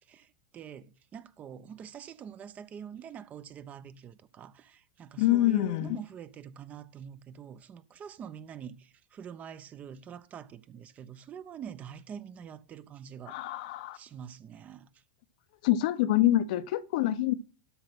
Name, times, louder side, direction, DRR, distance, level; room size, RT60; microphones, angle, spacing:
voice 1, 0.1-13.4 13.9-14.9, right 8 dB, 35° right, 1.1 m, -45 dB
voice 2, 5.2-6.0 13.3-14.0 15.6-17.3, left 14 dB, 65° left, 1.0 m, -26 dB
12.5 x 5.3 x 6.1 m
hypercardioid pair, 100°, 5 cm